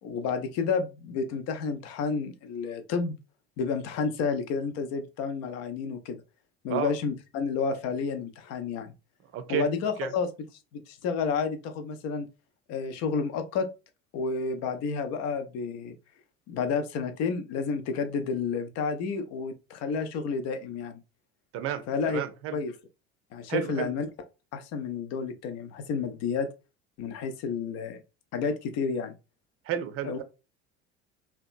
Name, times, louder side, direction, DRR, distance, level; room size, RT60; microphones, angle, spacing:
voice 1, 0.0-3.2 3.6-6.2 6.6-8.9 9.5-10.3 10.7-12.3 12.7-13.7 14.1-15.9 16.5-21.0 21.9-22.2 22.5-22.7 23.3-24.1 24.5-26.5 27.0-28.0 28.3-29.1 30.0-30.2, left 5 dB, 50° left, 0.6 m, -30 dB
voice 2, 9.3-9.6 10.0-10.1 21.5-22.6 23.5-23.9 29.7-30.2, right 10 dB, 40° right, 0.5 m, -31 dB
2.8 x 2.2 x 2.5 m
figure-of-eight pair, 65°, 33 cm